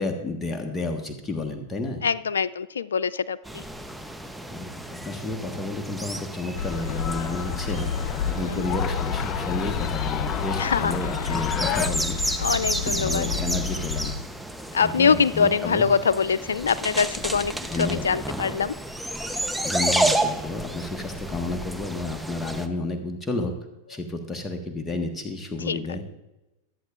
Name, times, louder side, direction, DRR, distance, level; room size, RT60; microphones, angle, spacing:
voice 1, 0.0-2.1 4.5-12.4 12.8-14.1 14.8-15.9 17.1-18.1 19.6-23.5 23.9-26.0, left 2 dB, 15° left, 3 dB, 1.4 m, -31 dB
voice 2, 2.0-3.6 8.4-8.5 10.6-10.9 12.4-13.3 14.7-17.5 17.8-18.7 25.7-25.8, left 6 dB, 85° left, 18 dB, 0.3 m, -23 dB
sound 1, 3.5-22.7, right 1 dB, ahead, 0.8 m, -31 dB
sound 2, 6.5-14.2, left 6 dB, 60° left, 1.3 m, -30 dB
sound 3, 6.7-11.9, left 8 dB, 35° left, 0.6 m, -32 dB
23.0 x 8.1 x 2.5 m, 1.0 s
hypercardioid pair, 100°, 0 cm